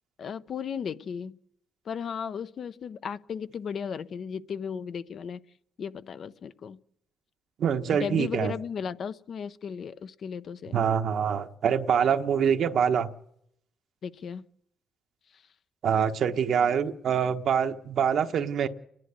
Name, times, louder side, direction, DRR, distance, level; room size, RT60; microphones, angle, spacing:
voice 1, 0.2-1.4 1.9-5.4 5.8-6.8 7.9-10.8 14.0-14.4, left 7 dB, 55° left, 0.7 m, -35 dB
voice 2, 7.6-8.5 10.7-13.1 15.8-18.7, right 7 dB, 65° right, 1.1 m, -25 dB
30.0 x 11.0 x 8.2 m
cardioid pair, 90°, 0 cm